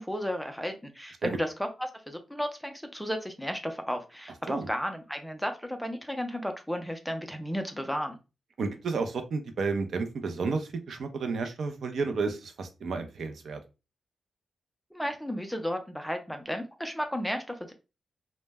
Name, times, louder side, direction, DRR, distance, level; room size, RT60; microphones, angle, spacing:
voice 1, 0.0-8.2 14.9-17.7, equal, ahead, 6 dB, 0.4 m, -33 dB
voice 2, 8.6-13.6, right 4 dB, 75° right, 6 dB, 0.4 m, -31 dB
2.1 x 2.0 x 3.3 m, 0.29 s
wide cardioid pair, 140°, 0 cm